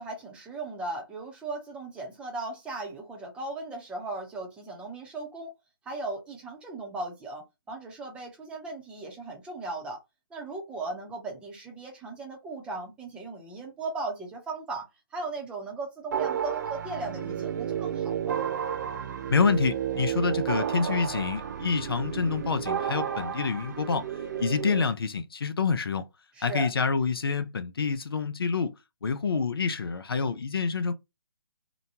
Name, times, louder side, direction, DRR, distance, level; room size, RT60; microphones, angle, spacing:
voice 1, 0.0-5.5 5.8-10.0 10.3-18.4 26.4-26.7, right 3 dB, 10° right, 0.7 m, -37 dB
sound 1, 16.1-24.8, right 8 dB, 50° right, 0.4 m, -32 dB
voice 2, 19.3-24.1 24.4-26.1 26.4-28.7 29.0-30.9, left 5 dB, 80° left, 0.5 m, -27 dB
2.9 x 2.2 x 2.7 m
figure-of-eight pair, 145°, 12 cm